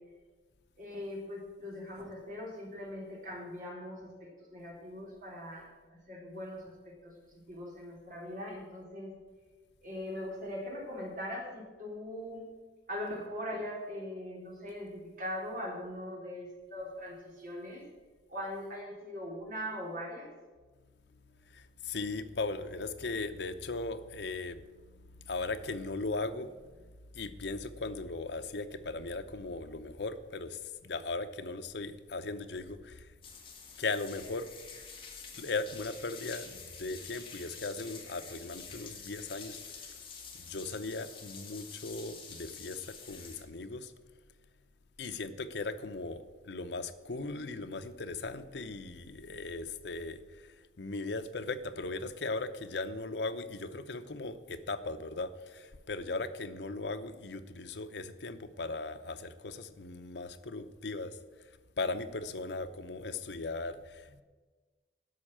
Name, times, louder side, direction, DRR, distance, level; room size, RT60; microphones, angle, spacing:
voice 1, 0.8-7.1 7.5-9.1 9.8-12.4 12.9-17.8 18.3-20.3, left 1 dB, 50° right, -2 dB, 3.6 m, -41 dB
voice 2, 21.4-26.5 27.1-33.1 33.8-34.5 35.3-40.0 40.4-43.9 45.0-64.2, left 3 dB, 75° left, 9 dB, 0.8 m, -38 dB
sound 1, 33.2-43.4, left 5 dB, 30° left, 1.9 m, -48 dB
11.5 x 6.4 x 8.8 m, 1.3 s
head